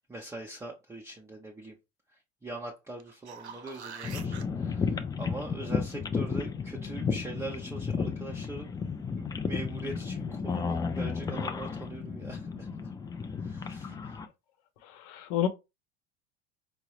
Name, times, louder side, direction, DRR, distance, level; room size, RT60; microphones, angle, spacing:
voice 1, 0.0-1.7 2.4-8.7 9.2-12.9 13.4-14.2, right 2 dB, 10° right, 0.7 m, -42 dB
sound 1, 3.0-4.4 9.2-9.3, right 6 dB, 90° right, 0.5 m, -44 dB
sound 2, 4.0-14.3, left 5 dB, 10° left, 0.4 m, -33 dB
voice 2, 14.8-15.5, left 10 dB, 50° left, 0.6 m, -30 dB
4.5 x 2.1 x 3.0 m
hypercardioid pair, 75°, 32 cm